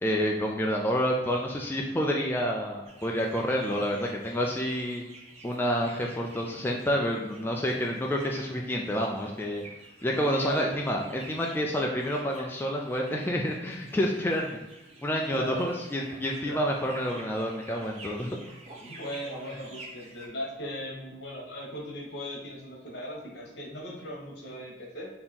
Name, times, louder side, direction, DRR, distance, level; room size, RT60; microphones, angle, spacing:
voice 1, 0.0-5.0 5.4-14.6 15.0-18.4, equal, 10° left, -1 dB, 0.4 m, -29 dB
sound 1, 2.9-20.3, right 2 dB, 40° right, 0.8 m, -49 dB
voice 2, 3.4-3.7 5.8-6.0 10.1-10.6 15.3-15.7 16.4-16.7 18.8-25.1, equal, 70° left, -2 dB, 1.2 m, -38 dB
4.2 x 2.9 x 3.6 m, 0.99 s
head